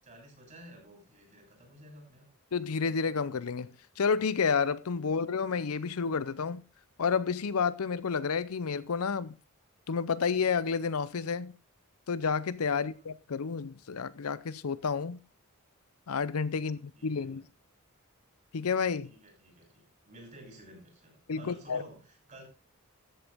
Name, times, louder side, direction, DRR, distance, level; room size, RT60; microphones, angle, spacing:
voice 1, 0.0-2.3 12.7-13.1 16.6-17.4 19.0-22.4, right 1 dB, 35° right, 6.6 m, -53 dB
voice 2, 2.5-6.6 7.0-9.3 9.9-11.5 12.1-15.2 16.1-17.4 18.5-19.1 21.3-21.8, left 5 dB, 75° left, 0.6 m, -30 dB
13.5 x 8.2 x 3.5 m
head